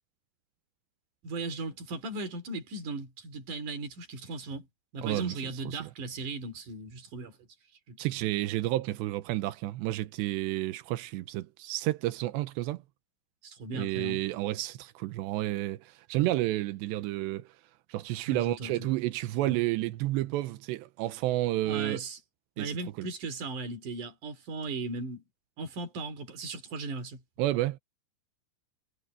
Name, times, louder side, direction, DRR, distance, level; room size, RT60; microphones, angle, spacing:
voice 1, 1.2-4.7 4.9-7.3 7.9-8.1 13.4-14.2 18.3-18.9 19.4-19.6 21.6-22.2 22.6-25.2 25.6-27.2, right 3 dB, 50° right, 4.9 m, -37 dB
voice 2, 5.0-5.9 8.0-12.8 13.7-17.5 17.9-22.0 22.6-23.1 27.4-27.8, right 16 dB, 90° right, 3.1 m, -31 dB
omnidirectional pair, 4.9 m